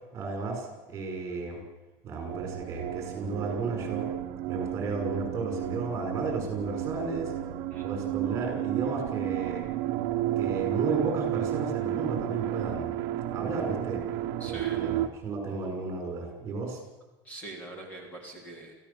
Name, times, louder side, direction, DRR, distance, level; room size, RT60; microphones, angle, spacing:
voice 1, 0.1-1.6 2.0-4.1 4.5-7.3 7.8-9.7 10.4-13.0 13.3-14.0 14.5-16.8, right 4 dB, 30° right, 2 dB, 5.9 m, -33 dB
sound 1, 2.3-15.1, right 12 dB, 50° right, 1.2 m, -32 dB
voice 2, 14.4-14.8 17.2-18.7, right 2 dB, 15° left, 1 dB, 3.4 m, -43 dB
25.0 x 15.5 x 7.1 m, 1.2 s
cardioid pair, 175°, 10 cm